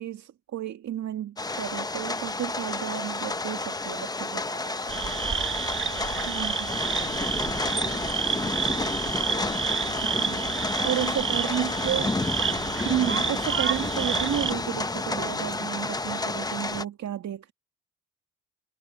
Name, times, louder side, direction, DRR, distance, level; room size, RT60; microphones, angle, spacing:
voice 1, 0.0-4.4 6.3-6.7 10.0-10.5 10.8-12.1 12.8-17.5, right 11 dB, 65° right, 2.5 m, -32 dB
sound 1, 1.4-16.8, left 2 dB, 15° left, 0.8 m, -30 dB
voice 2, 4.3-10.2 11.1-12.6, right 3 dB, 25° right, 7.3 m, -50 dB
sound 2, 4.9-14.5, right 7 dB, 40° right, 1.4 m, -30 dB
cardioid pair, 90°, 30 cm